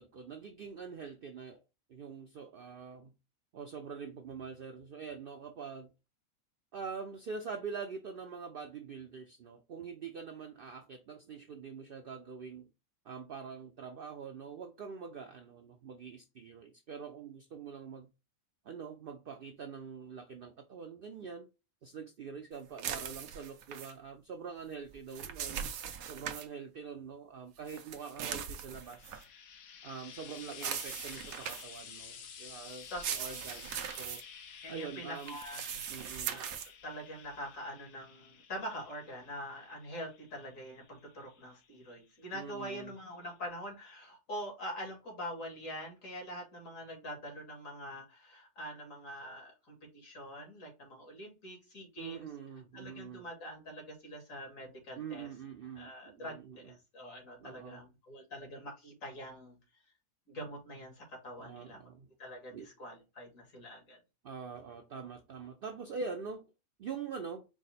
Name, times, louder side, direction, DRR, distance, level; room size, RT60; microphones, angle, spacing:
voice 1, 0.0-1.6 1.9-3.1 3.5-5.9 6.7-12.7 13.0-18.1 18.6-21.5 21.8-25.7 26.1-29.3 29.8-32.9 33.1-34.2 34.7-35.4 35.9-36.4 42.3-42.9 52.0-53.3 55.0-56.7 57.4-57.8 61.4-62.1 62.5-62.7 64.2-66.5 66.8-67.5, right 5 dB, 65° right, 0.5 m, -44 dB
sound 1, 22.8-23.9 24.9-26.5 27.7-29.2 30.5-31.8 32.8-34.2 35.2-36.7, right 8 dB, 90° right, 1.1 m, -40 dB
Frying (food), 28.6-42.0 43.0-43.1, left 7 dB, 85° left, 1.1 m, -52 dB
voice 2, 32.9-33.4 34.6-36.0 36.2-36.5 36.8-52.3 52.7-55.3 55.8-56.4 56.6-59.8 60.3-61.8 62.2-64.0, equal, 70° left, 2.0 m, -44 dB
4.8 x 2.0 x 4.1 m
omnidirectional pair, 1.5 m